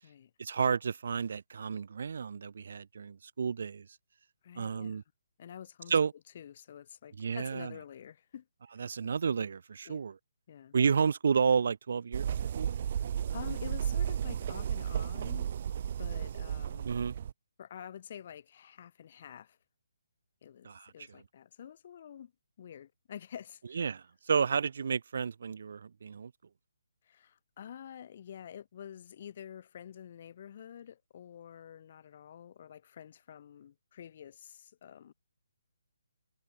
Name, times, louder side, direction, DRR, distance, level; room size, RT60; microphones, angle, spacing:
voice 1, 0.4-3.9 4.6-5.0 5.9-6.1 7.2-7.7 8.8-10.1 10.7-12.7 16.8-17.1 20.6-20.9 23.8-26.3, right 6 dB, 55° right, 7.2 m, -31 dB
voice 2, 4.4-5.0 5.4-6.0 6.3-8.5 9.8-10.1 10.5-10.7 12.8-15.5 16.0-16.9 17.6-19.6 20.4-22.3 22.6-23.9 27.0-35.1, left 9 dB, 40° left, 7.4 m, -48 dB
sound 1, 12.1-17.3, right 9 dB, 40° right, 0.9 m, -33 dB
hypercardioid pair, 165°, 0 cm